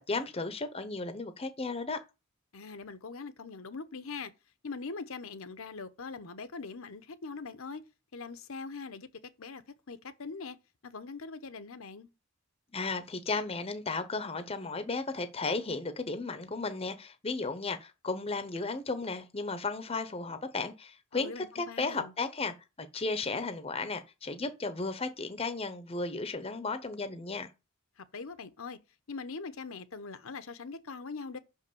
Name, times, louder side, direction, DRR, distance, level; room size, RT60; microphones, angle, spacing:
voice 1, 0.1-2.0 12.7-27.5, left 3 dB, 25° left, 0.7 m, -34 dB
voice 2, 2.5-4.3 4.6-7.8 8.1-9.1 9.4-10.6 10.8-12.1 21.1-22.1 28.0-28.8 29.1-31.4, left 4 dB, 70° left, 0.8 m, -42 dB
5.8 x 5.5 x 6.9 m
head